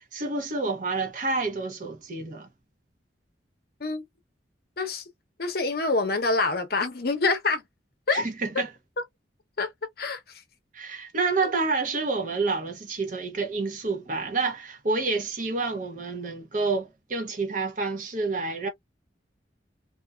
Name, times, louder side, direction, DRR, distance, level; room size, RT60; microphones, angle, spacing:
voice 1, 0.0-2.5 8.1-8.7 10.7-18.7, right 3 dB, 45° right, 0.8 m, -28 dB
voice 2, 5.4-7.6 8.1-8.3 9.6-9.7 10.0-10.4 11.4-11.5, left 3 dB, 55° left, 0.7 m, -26 dB
2.5 x 2.3 x 2.2 m
head